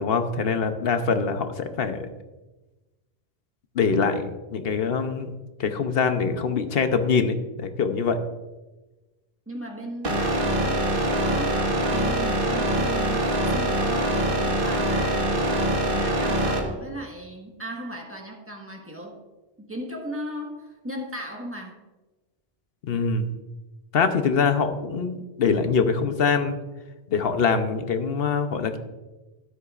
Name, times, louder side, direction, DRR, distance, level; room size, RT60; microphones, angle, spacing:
voice 1, 0.0-2.0 3.7-5.3 5.6-8.2 22.8-23.4 23.9-26.6 27.1-28.8, left 5 dB, 70° left, 8 dB, 1.0 m, -24 dB
voice 2, 9.5-15.3 15.9-19.2 19.6-21.8, right 1 dB, 15° right, 1 dB, 1.4 m, -37 dB
sound 1, 10.0-16.6, right 1 dB, 60° right, 1.6 m, -24 dB
12.5 x 9.8 x 2.5 m, 1.1 s
omnidirectional pair, 1.0 m